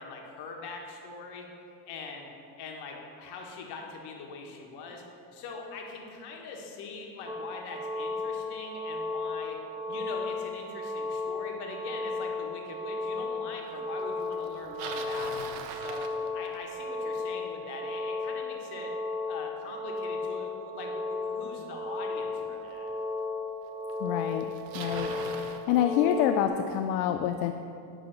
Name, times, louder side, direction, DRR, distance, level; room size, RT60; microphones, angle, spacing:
voice 1, 0.0-1.5 1.8-2.3 2.6-5.0 5.3-9.6 9.9-16.1 16.3-18.9 19.3-22.9, left 4 dB, 55° left, 1 dB, 1.6 m, -42 dB
sound 1, 7.3-26.5, left 3 dB, 10° right, 0.5 m, -35 dB
Bicycle, 14.4-16.8 21.8-21.9 22.8-22.9 23.9-24.0 24.2-25.6, right 6 dB, 70° right, 1.0 m, -41 dB
voice 2, 24.0-24.5 24.7-25.1 25.7-27.5, left 10 dB, 75° left, 6 dB, 0.6 m, -26 dB
10.5 x 3.8 x 6.6 m, 2.6 s
supercardioid pair, 120°, 47 cm